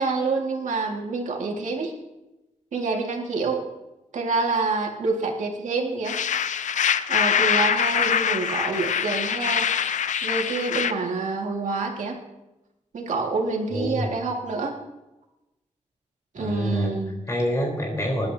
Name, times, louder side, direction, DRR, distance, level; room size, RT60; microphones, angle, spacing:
voice 1, 0.0-2.0 2.7-3.6 4.1-6.2 7.1-9.7 10.2-12.2 12.9-14.7 16.3-17.2, right 3 dB, 90° right, 1 dB, 2.4 m, -27 dB
sound 1, 6.0-10.9, left 8 dB, 80° left, 0.6 m, -24 dB
voice 2, 13.7-14.1 16.4-17.0 17.3-18.3, equal, 25° left, 0 dB, 4.3 m, -26 dB
21.0 x 11.5 x 2.9 m, 0.98 s
wide cardioid pair, 165°, 12 cm